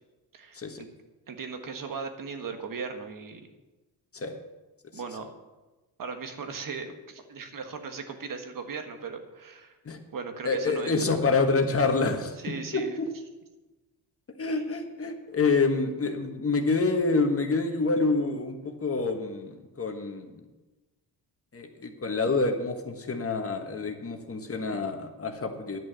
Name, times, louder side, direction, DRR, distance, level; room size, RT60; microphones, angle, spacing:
voice 1, 0.3-0.9 1.3-3.5 4.9-5.3 6.0-9.8 10.1-11.2 12.4-13.0, right 5 dB, 55° right, 6 dB, 1.5 m, -38 dB
voice 2, 10.4-13.1 14.4-20.4 21.5-25.8, left 3 dB, 35° left, 5 dB, 1.4 m, -27 dB
10.5 x 6.3 x 8.4 m, 1.1 s
cardioid pair, 100°, 41 cm